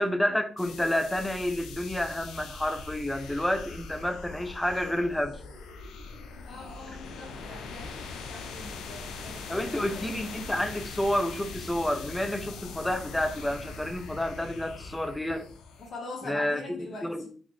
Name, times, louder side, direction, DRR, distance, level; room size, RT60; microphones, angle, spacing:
voice 1, 0.0-5.4 9.5-15.5 16.2-16.6 17.0-17.3, left 1 dB, 10° left, 0.5 m, -29 dB
sound 1, 0.6-15.9, left 4 dB, 80° left, 0.5 m, -42 dB
voice 2, 6.4-10.2 15.8-17.1, left 2 dB, 55° left, 1.0 m, -43 dB
4.0 x 2.5 x 3.0 m
cardioid pair, 90°, 0 cm